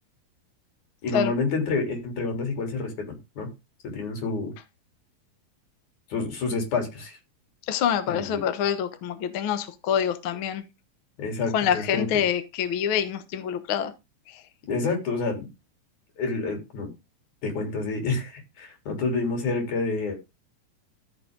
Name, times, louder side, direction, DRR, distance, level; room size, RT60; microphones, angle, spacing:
voice 1, 1.0-3.5 3.9-4.5 6.1-7.2 8.1-8.4 11.2-12.2 14.7-15.5 16.2-16.9 17.4-20.2, left 3 dB, 55° left, 4.9 m, -28 dB
voice 2, 7.7-10.6 11.5-13.9, left 8 dB, 80° left, 1.1 m, -26 dB
14.0 x 6.7 x 3.8 m
omnidirectional pair, 4.1 m